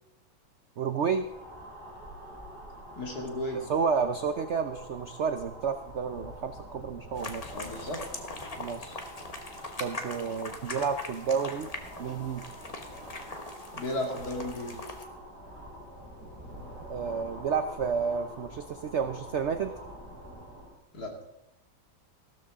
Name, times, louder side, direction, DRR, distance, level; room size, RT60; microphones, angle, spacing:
voice 1, 0.8-1.3 3.5-7.5 8.6-9.0 9.8-11.7 12.0-12.4 16.9-19.7, right 6 dB, 80° right, 8 dB, 0.6 m, -30 dB
sound 1, 0.9-20.8, equal, 15° right, 3.8 m, -46 dB
voice 2, 2.9-3.6 7.5-8.0 13.7-14.8 20.9-21.1, left 1 dB, 55° left, 1 dB, 3.0 m, -34 dB
sound 2, 7.2-15.0, left 2 dB, 25° left, 0.9 m, -42 dB
15.0 x 13.0 x 3.7 m, 0.84 s
omnidirectional pair, 2.1 m